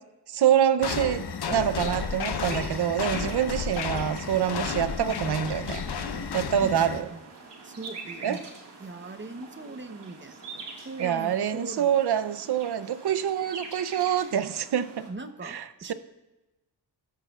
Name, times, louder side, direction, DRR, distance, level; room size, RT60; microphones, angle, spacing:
voice 1, 0.3-5.8 6.3-7.1 8.2-8.4 11.0-15.1 15.4-15.9, right 9 dB, 70° right, 13 dB, 0.7 m, -26 dB
sound 1, 0.8-7.0, left 6 dB, 70° left, 1.0 m, -32 dB
sound 2, 1.4-15.1, right 4 dB, 90° right, 2.0 m, -45 dB
voice 2, 6.6-7.2 7.6-8.5 8.8-11.9 15.1-15.9, right 2 dB, 30° right, 8 dB, 0.9 m, -40 dB
16.5 x 13.0 x 2.4 m, 1.1 s
wide cardioid pair, 90°, 41 cm